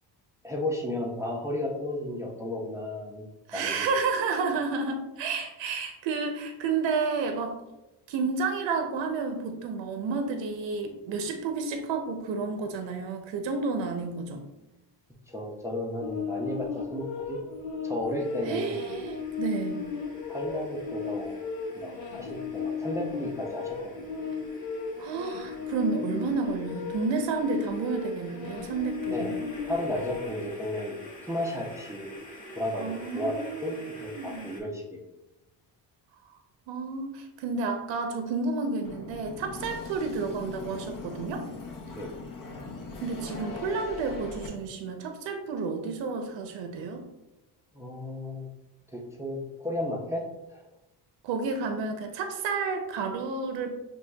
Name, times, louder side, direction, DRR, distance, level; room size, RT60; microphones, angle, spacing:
voice 1, 0.4-3.2 3.5-3.9 15.3-17.4 17.8-18.8 20.3-21.4 21.7-24.1 29.1-29.3 29.7-30.9 31.3-32.1 32.5-33.3 33.6-33.8 34.0-35.0 41.9-42.1 47.7-48.5 48.9-50.7, left 1 dB, 5° right, -2 dB, 0.4 m, -33 dB
voice 2, 3.5-7.6 8.1-14.4 18.4-19.8 25.0-29.4 32.8-34.5 36.7-41.5 43.0-47.1 51.2-53.8, right 4 dB, 75° right, 5 dB, 0.7 m, -31 dB
sound 1, 16.0-30.5, left 5 dB, 80° left, 0.8 m, -35 dB
sound 2, 18.2-34.6, equal, 20° left, 1.1 m, -48 dB
sound 3, 38.8-44.5, left 3 dB, 45° left, 0.8 m, -40 dB
6.1 x 3.1 x 2.2 m, 0.97 s
cardioid pair, 140°, 45 cm